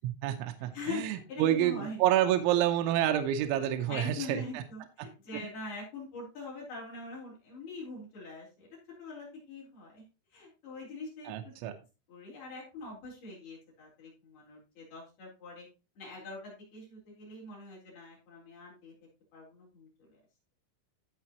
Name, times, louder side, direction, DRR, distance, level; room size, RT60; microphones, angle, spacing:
voice 1, 0.0-4.6 5.0-5.1 5.3-5.5 11.3-11.7, right 12 dB, 80° right, 5 dB, 3.0 m, -29 dB
voice 2, 0.7-2.0 3.9-8.7 9.0-10.0 10.3-11.7 12.1-15.7 16.0-18.9 19.3-20.2, left 3 dB, 50° left, -5 dB, 5.9 m, -43 dB
15.5 x 5.3 x 3.0 m, 0.30 s
omnidirectional pair, 5.7 m